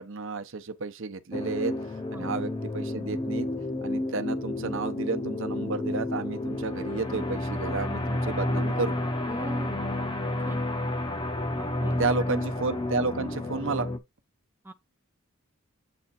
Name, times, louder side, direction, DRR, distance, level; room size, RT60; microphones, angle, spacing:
voice 1, 0.0-1.7 2.1-3.5 3.8-9.0 11.8-13.9, right 3 dB, 60° right, 0.8 m, -31 dB
sound 1, 1.3-14.0, left 1 dB, 20° left, 0.7 m, -31 dB
voice 2, 9.3-9.8 10.4-10.6 11.6-12.0 14.6-14.7, right 1 dB, 10° right, 0.4 m, -41 dB
7.6 x 3.5 x 4.2 m
head